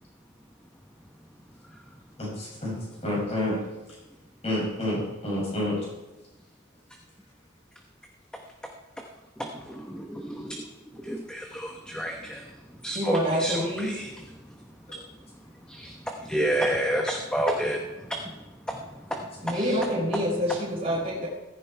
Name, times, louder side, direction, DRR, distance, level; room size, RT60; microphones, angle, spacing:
voice 1, 2.2-2.8 3.0-3.6 4.4-5.8, left 1 dB, 30° left, -4 dB, 6.9 m, -28 dB
voice 2, 9.6-10.6 11.0-12.4 12.8-14.1 15.7-15.9 16.3-17.8 18.7-18.8 19.5-19.7, right 1 dB, 5° left, 1 dB, 1.0 m, -29 dB
voice 3, 12.9-14.0 19.4-21.3, equal, 30° right, -5 dB, 3.9 m, -27 dB
15.5 x 14.5 x 4.6 m, 1.0 s
head